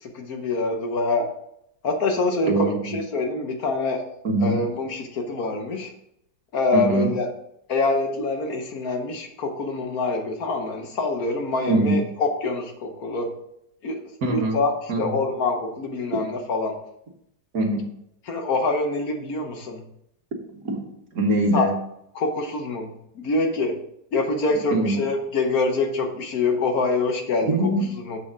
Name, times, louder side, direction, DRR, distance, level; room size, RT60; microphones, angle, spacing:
voice 1, 0.0-1.3 1.8-4.0 4.4-5.9 6.5-7.3 7.7-13.3 13.8-14.0 14.3-16.8 18.3-19.8 21.5-21.7 22.1-22.9 23.1-23.8 24.1-27.7 28.0-28.2, left 3 dB, 60° left, 4 dB, 1.4 m, -25 dB
voice 2, 2.5-3.0 4.2-4.6 6.7-7.1 11.7-12.0 14.2-14.6 14.9-15.2 17.5-17.9 20.5-20.9 21.1-21.7 24.7-25.0 27.5-27.9, right 2 dB, 60° right, 2 dB, 1.8 m, -22 dB
7.1 x 6.9 x 3.7 m, 0.76 s
omnidirectional pair, 1.8 m